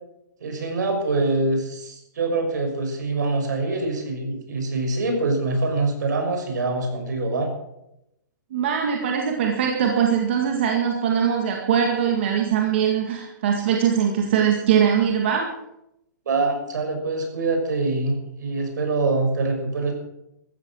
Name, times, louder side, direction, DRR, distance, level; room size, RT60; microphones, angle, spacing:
voice 1, 0.4-7.5 16.2-19.9, right 3 dB, 65° right, 4 dB, 6.3 m, -24 dB
voice 2, 8.5-15.5, right 8 dB, 35° right, 1 dB, 2.0 m, -21 dB
15.0 x 14.0 x 6.3 m, 0.83 s
hypercardioid pair, 180°, 10 cm